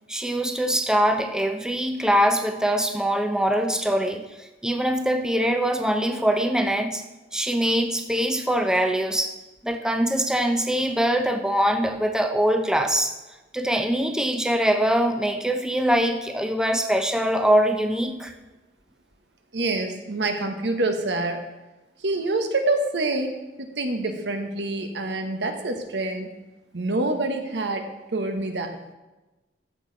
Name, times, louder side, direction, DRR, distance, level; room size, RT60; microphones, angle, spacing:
voice 1, 0.1-7.0 7.3-9.3 9.6-13.1 13.5-18.3, equal, 5° right, 6 dB, 0.6 m, -23 dB
voice 2, 19.5-21.4 22.0-26.3 26.7-28.9, right 2 dB, 75° right, 5 dB, 1.3 m, -26 dB
14.0 x 6.3 x 4.1 m, 1.1 s
head